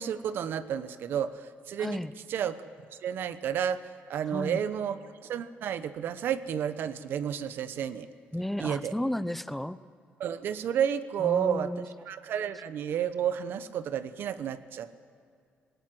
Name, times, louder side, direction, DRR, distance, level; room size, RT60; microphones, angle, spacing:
voice 1, 0.0-2.0 2.3-2.6 3.0-3.8 4.1-5.0 5.3-8.1 8.6-8.9 10.2-11.7 12.1-14.9, right 9 dB, 65° right, 13 dB, 0.9 m, -31 dB
voice 2, 1.8-2.1 4.3-4.6 8.3-9.8 11.2-11.9, left 1 dB, 5° left, 15 dB, 0.6 m, -33 dB
19.0 x 18.5 x 7.7 m, 2.3 s
cardioid pair, 130°, 4 cm